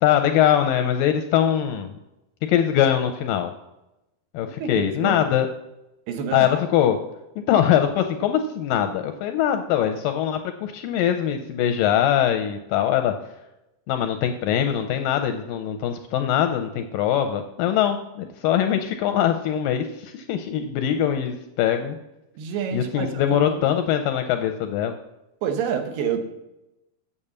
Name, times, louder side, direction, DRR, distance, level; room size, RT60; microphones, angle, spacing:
voice 1, 0.0-2.0 2.5-3.5 4.3-5.5 6.3-7.0 7.4-13.2 13.9-22.0 22.7-24.9, left 10 dB, 80° left, 7 dB, 2.0 m, -22 dB
voice 2, 4.6-5.3 6.1-6.6 22.4-23.7 25.4-26.3, right 7 dB, 85° right, 7 dB, 3.1 m, -28 dB
8.6 x 7.1 x 6.7 m, 0.93 s
omnidirectional pair, 4.5 m